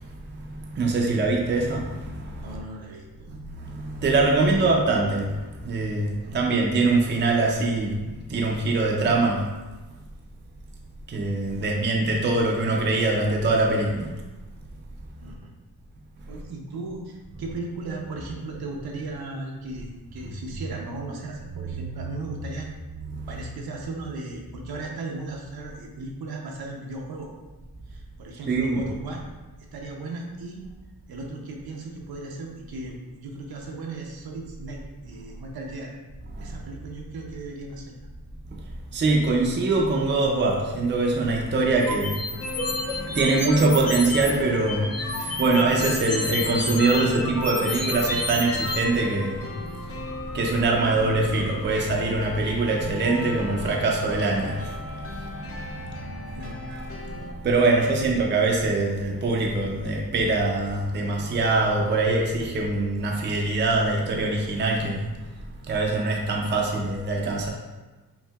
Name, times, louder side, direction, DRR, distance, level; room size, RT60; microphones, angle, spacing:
voice 1, 0.7-2.6 3.6-5.3 5.6-9.5 11.1-14.1 21.6-21.7 28.5-28.8 36.4-36.6 38.9-42.2 43.0-44.9 45.2-49.5 50.3-54.7 56.4-56.8 57.4-65.1 65.7-67.5, right 3 dB, 30° right, -1 dB, 0.5 m, -23 dB
voice 2, 2.4-3.0 4.4-4.7 6.2-6.5 11.5-11.7 15.2-15.5 16.3-22.7 23.3-27.3 27.9-29.3 29.7-30.6 31.1-35.9 36.4-38.0 55.8-55.9 56.4-56.7 58.0-58.1, right 2 dB, 75° right, 0 dB, 0.7 m, -36 dB
sound 1, 41.8-44.3 44.7-48.8, left 2 dB, 70° left, 1.1 m, -30 dB
sound 2, 42.3-57.3, left 2 dB, 40° left, 0.5 m, -37 dB
5.5 x 2.6 x 2.3 m, 1.2 s
wide cardioid pair, 155°, 37 cm